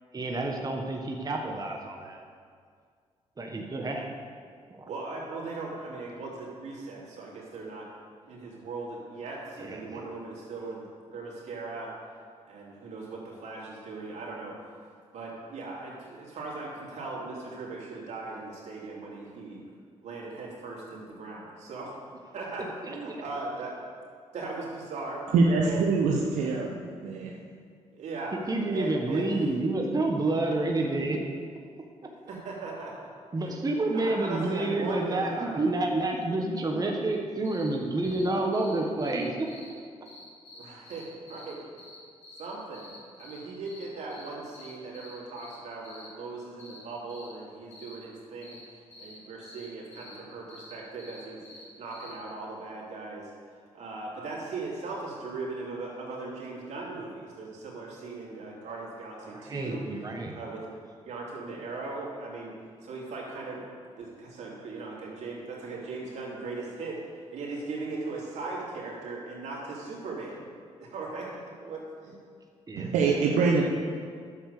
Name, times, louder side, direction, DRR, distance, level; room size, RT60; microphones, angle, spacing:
voice 1, 0.1-2.2 3.4-4.2 4.7-4.9 9.6-10.1 22.8-23.2 28.5-31.2 33.3-39.5 59.2-60.4 72.7-73.2, right 2 dB, 30° right, 1 dB, 1.4 m, -29 dB
voice 2, 4.9-7.9 8.3-10.8 11.1-11.9 12.5-14.6 15.1-19.6 20.0-22.0 22.3-23.7 24.3-25.8 27.9-28.4 28.7-29.3 32.3-32.9 33.4-33.6 33.9-35.6 40.5-41.6 42.4-42.9 43.2-48.6 49.0-53.3 53.7-59.8 60.3-60.7 61.0-62.5 62.8-63.6 64.0-67.0 67.3-70.5 70.8-71.3 71.6-72.2, right 3 dB, 70° right, -4 dB, 3.2 m, -38 dB
voice 3, 25.3-27.3 72.8-73.6, right 4 dB, 90° right, -1 dB, 1.0 m, -24 dB
sound 1, 37.4-37.7 38.0-38.3 38.5-39.7 40.1-42.0 42.2-42.5 42.7-43.4 43.7-43.8 44.1-44.3 44.5-45.6 45.8-46.1 46.6-46.8 47.1-47.3 47.7-47.9 48.4-48.6 48.9-49.1 49.4-49.6 49.9-50.1 50.5-51.6 51.9-52.1, left 3 dB, 70° left, 3.2 m, -49 dB
10.0 x 7.3 x 6.8 m, 2.1 s
supercardioid pair, 65°, 12 cm